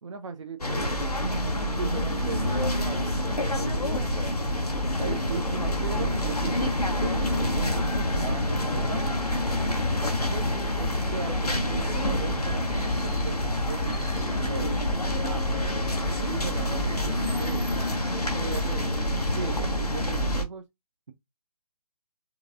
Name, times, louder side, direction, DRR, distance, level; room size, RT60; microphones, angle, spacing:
voice 1, 0.0-4.1 5.0-9.1 10.3-10.4 10.8-14.8 15.2-15.5 16.2-17.0 17.4-17.7 18.3-19.1 19.3-20.6, right 5 dB, 55° right, 0.6 m, -38 dB
sound 1, 0.6-20.5, left 1 dB, 85° left, 0.9 m, -27 dB
4.6 x 2.3 x 2.5 m
figure-of-eight pair, 135°, 19 cm